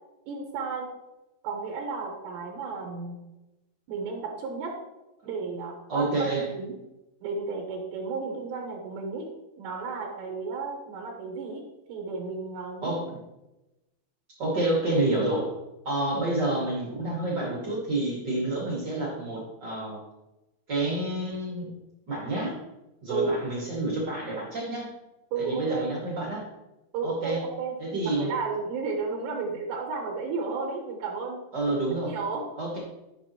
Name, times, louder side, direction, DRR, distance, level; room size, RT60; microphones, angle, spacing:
voice 1, 0.3-0.9 1.4-3.2 3.9-4.8 5.2-6.3 6.5-6.7 7.2-9.3 9.6-11.6 11.9-13.0 23.1-23.4 25.3-25.9 26.9-31.4 32.1-32.5, right 4 dB, 80° right, 1 dB, 3.5 m, -33 dB
voice 2, 5.9-6.5 12.8-13.2 14.4-15.5 15.8-20.0 20.7-21.7 22.1-22.5 23.0-24.9 25.4-26.4 27.0-27.4 27.8-28.3 31.5-32.1 32.6-32.8, right 2 dB, 40° right, -4 dB, 1.7 m, -28 dB
12.5 x 6.3 x 3.0 m, 0.98 s
omnidirectional pair, 5.1 m